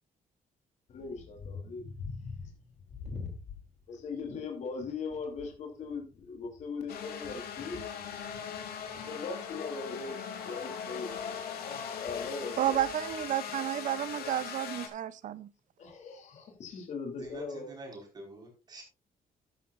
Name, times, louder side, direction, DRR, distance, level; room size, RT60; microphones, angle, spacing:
voice 1, 0.9-2.5 2.9-3.4 3.9-7.8 8.3-12.8 15.8-17.7, left 4 dB, 50° left, 3.0 m, -40 dB
sound 1, 6.9-14.9, left 7 dB, 85° left, 2.9 m, -40 dB
voice 2, 12.6-15.5, right 12 dB, 55° right, 0.6 m, -31 dB
voice 3, 17.2-18.8, right 2 dB, 25° right, 4.7 m, -47 dB
12.5 x 11.5 x 2.5 m
cardioid pair, 175°, 15 cm